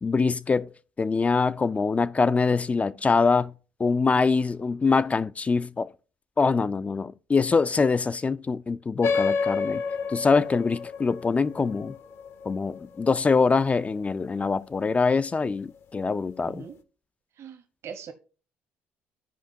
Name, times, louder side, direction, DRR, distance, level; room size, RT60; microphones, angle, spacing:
voice 1, 0.0-0.7 1.0-3.5 3.8-5.9 6.4-9.8 10.1-12.0 12.5-16.7, left 4 dB, 25° left, 0.3 m, -24 dB
sound 1, 9.0-14.0, left 5 dB, 55° left, 0.7 m, -30 dB
voice 2, 16.4-16.7 17.4-18.1, right 7 dB, 55° right, 1.1 m, -41 dB
13.5 x 5.0 x 2.7 m
hypercardioid pair, 60°, 5 cm